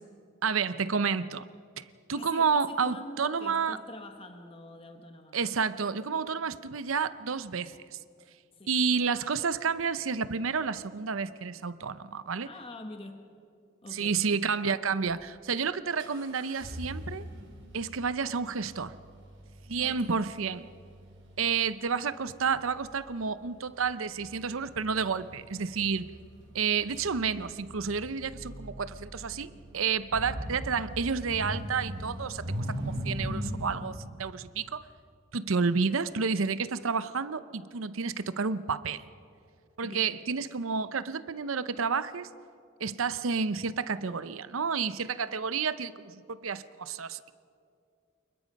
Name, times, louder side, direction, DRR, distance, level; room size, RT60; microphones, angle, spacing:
voice 1, 0.4-1.5 1.8-1.9 2.1-3.8 5.3-8.0 8.7-12.5 13.9-17.3 17.7-18.9 19.7-20.7 21.4-26.1 26.5-34.8 35.3-39.0 39.8-42.3 42.8-47.3, right 5 dB, 80° right, 14 dB, 0.7 m, -30 dB
voice 2, 2.1-5.4 8.6-8.7 12.4-13.3 13.8-14.2 19.8-20.2 39.8-40.1, left 1 dB, 25° left, 5 dB, 1.3 m, -45 dB
sound 1, 15.1-15.2 16.0-33.7, equal, 65° right, 4.0 m, -41 dB
28.5 x 21.0 x 5.3 m, 2.4 s
head